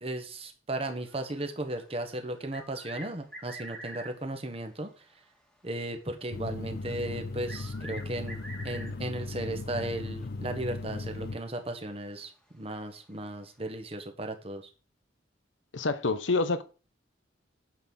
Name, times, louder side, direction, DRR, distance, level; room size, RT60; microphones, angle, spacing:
voice 1, 0.0-4.9 5.6-14.6, right 1 dB, 30° right, 1.3 m, -36 dB
sound 1, 0.9-4.3 6.7-6.8 7.5-9.2 10.8-10.9 11.3-11.4 13.1-13.2, right 1 dB, 5° left, 1.6 m, -46 dB
sound 2, 6.3-11.4, left 3 dB, 55° left, 0.4 m, -37 dB
voice 2, 15.7-16.6, left 3 dB, 85° left, 0.9 m, -27 dB
9.0 x 4.1 x 7.1 m
head